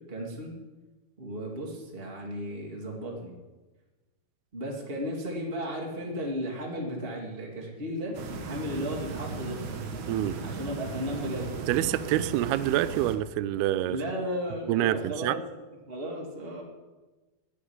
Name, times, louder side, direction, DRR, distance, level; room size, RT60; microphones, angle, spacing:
voice 1, 0.1-0.5 1.2-3.3 4.5-9.6 10.4-11.5 13.9-15.6 15.9-16.6, equal, 35° right, -1 dB, 0.9 m, -35 dB
sound 1, 8.1-13.2, right 4 dB, 65° right, 2.0 m, -37 dB
voice 2, 11.7-14.0 14.7-15.4, right 13 dB, 80° right, 13 dB, 2.3 m, -26 dB
19.5 x 6.8 x 9.6 m, 1.2 s
omnidirectional pair, 5.2 m